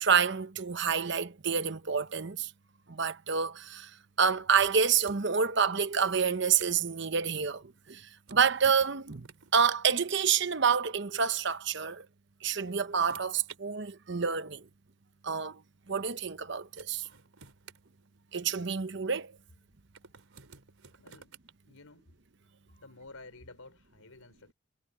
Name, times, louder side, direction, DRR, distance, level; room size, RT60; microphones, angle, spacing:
voice 1, 0.0-2.5 2.9-3.9 4.2-9.3 9.5-12.1 12.4-14.6 15.2-15.6 15.9-17.1 18.3-19.3, right 6 dB, 55° right, 0.9 m, -28 dB
sound 1, 4.6-5.4 6.2-6.9 8.2-9.6 10.9-11.0 12.2-13.6 14.6-14.7 16.3-16.4 16.8-18.6 19.9-21.5, right 6 dB, 80° right, 4.0 m, -53 dB
voice 2, 21.0-21.3 21.6-22.1 22.8-24.5, left 3 dB, 90° left, 4.2 m, -52 dB
head